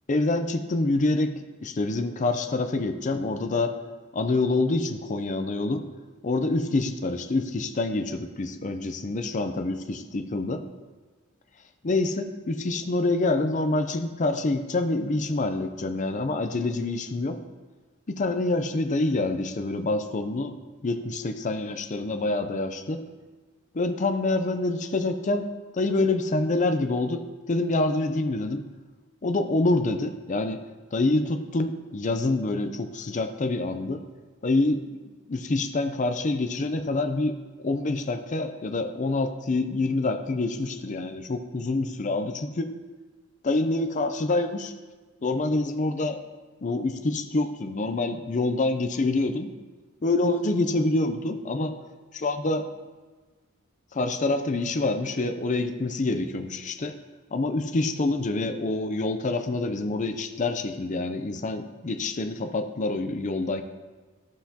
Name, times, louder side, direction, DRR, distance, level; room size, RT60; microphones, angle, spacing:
voice 1, 0.1-1.3 1.6-3.7 4.1-5.9 6.2-10.6 11.8-17.4 18.1-20.6 20.8-23.0 23.7-25.5 25.7-27.2 27.5-28.6 29.2-30.6 30.9-34.0 34.4-34.8 35.3-42.7 43.4-44.7 45.2-46.2 46.6-49.5 50.0-51.7 52.1-52.6 53.9-56.9 57.3-63.6, left 2 dB, 35° left, 7 dB, 0.5 m, -26 dB
14.5 x 5.9 x 2.8 m, 1.3 s
head